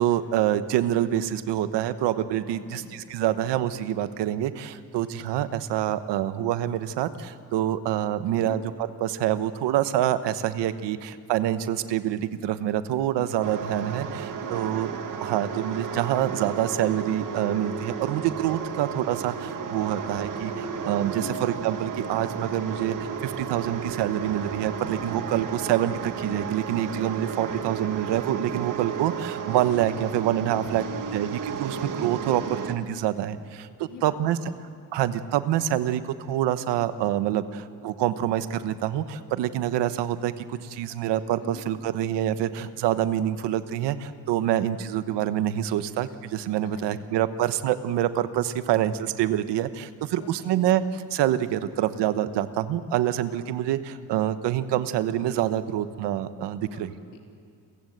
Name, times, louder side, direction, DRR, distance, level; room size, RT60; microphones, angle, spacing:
voice 1, 0.0-8.6 9.0-14.9 15.2-30.8 31.1-34.4 34.9-50.8 51.1-56.9, right 11 dB, 90° right, 12 dB, 1.1 m, -26 dB
voice 2, 2.5-3.1 8.2-8.6 14.4-14.9 21.1-21.5 30.5-31.0 33.9-34.7 41.4-41.7 46.6-47.1 50.2-50.6 56.6-56.8 57.1-57.2, left 5 dB, 90° left, 1 dB, 3.6 m, -46 dB
sound 1, 13.4-32.7, right 6 dB, 50° right, 1.7 m, -33 dB
29.5 x 16.0 x 8.0 m, 2.2 s
cardioid pair, 145°, 41 cm